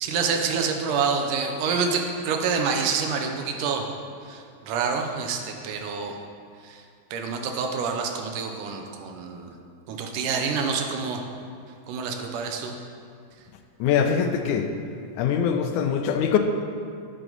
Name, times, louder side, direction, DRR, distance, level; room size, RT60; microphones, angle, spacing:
voice 1, 0.0-3.9 4.2-6.2 6.6-6.8 7.1-9.5 9.9-11.2 11.9-12.8, right 5 dB, 90° right, 4 dB, 2.4 m, -27 dB
voice 2, 13.8-14.7 15.2-16.4, left 7 dB, 85° left, 6 dB, 2.1 m, -23 dB
11.5 x 7.9 x 4.0 m, 2.3 s
omnidirectional pair, 3.5 m